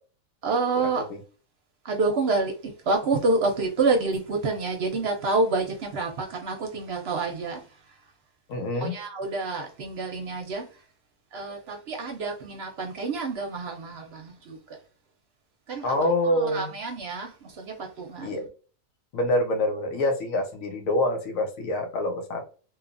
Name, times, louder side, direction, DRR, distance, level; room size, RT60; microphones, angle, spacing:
voice 1, 0.4-1.1 1.8-7.8 8.7-10.8 11.3-14.8 15.7-15.9 16.2-18.5, right 3 dB, 60° right, 0.8 m, -28 dB
voice 2, 8.5-8.9 15.8-16.7 18.2-18.4 19.1-22.4, left 1 dB, 75° left, 1.1 m, -26 dB
2.9 x 2.4 x 2.5 m
omnidirectional pair, 1.4 m